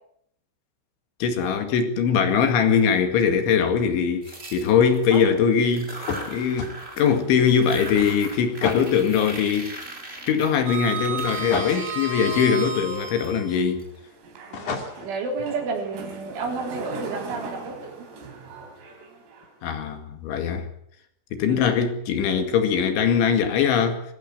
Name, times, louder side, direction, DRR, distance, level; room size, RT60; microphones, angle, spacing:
voice 1, 1.2-9.8 10.3-13.9 19.6-20.7 21.3-24.0, left 7 dB, 70° left, 4.3 m, -22 dB
sound 1, 4.2-5.2 5.6-7.2 7.4-13.8, right 2 dB, 15° right, 3.9 m, -40 dB
Sliding door, 4.3-5.3 5.7-5.8 7.5-8.6 8.8-9.2 9.5-13.6 14.2-19.4, right 4 dB, 85° right, 6.9 m, -35 dB
sound 2, 6.1-6.8 8.6-8.9 11.5-11.8 14.5-15.2, left 5 dB, 45° left, 3.3 m, -30 dB
voice 2, 14.5-18.0 21.5-21.7, right 4 dB, 65° right, 6.1 m, -31 dB
22.0 x 16.0 x 9.0 m
omnidirectional pair, 5.9 m